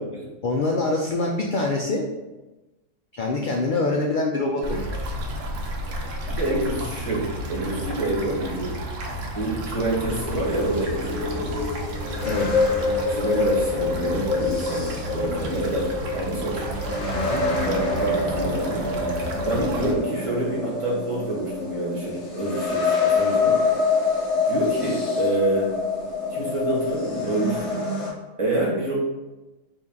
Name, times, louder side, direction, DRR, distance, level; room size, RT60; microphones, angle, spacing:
voice 1, 0.4-2.0 3.1-4.9 12.2-12.5 17.1-17.5 19.4-19.5, left 2 dB, 85° left, 0 dB, 0.4 m, -25 dB
sound 1, 4.6-19.9, equal, 70° right, 1.0 m, -32 dB
voice 2, 6.3-8.8 9.3-11.6 13.1-16.6 17.5-18.8 19.4-23.6 24.5-25.7 26.3-27.8 28.4-28.9, right 2 dB, 25° right, -5 dB, 1.2 m, -27 dB
sound 2, 10.1-28.1, left 4 dB, 55° left, 1.5 m, -26 dB
4.3 x 2.7 x 3.7 m, 1.1 s
omnidirectional pair, 1.4 m